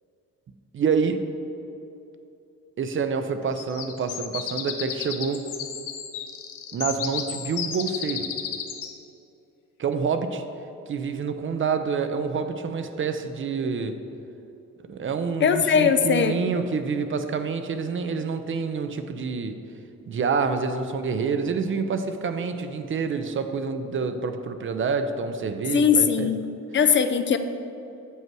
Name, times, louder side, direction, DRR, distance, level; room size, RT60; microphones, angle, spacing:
voice 1, 0.7-1.2 2.8-5.4 6.7-8.3 9.8-10.4 10.9-13.9 14.9-19.5 20.1-26.3, right 5 dB, 40° right, 8 dB, 0.6 m, -27 dB
sound 1, 3.6-8.9, left 8 dB, 85° left, 0.7 m, -33 dB
voice 2, 15.4-16.3 25.7-26.4 26.7-27.4, left 7 dB, 40° left, 8 dB, 0.4 m, -20 dB
7.3 x 5.5 x 4.6 m, 2.7 s
cardioid pair, 90°, 30 cm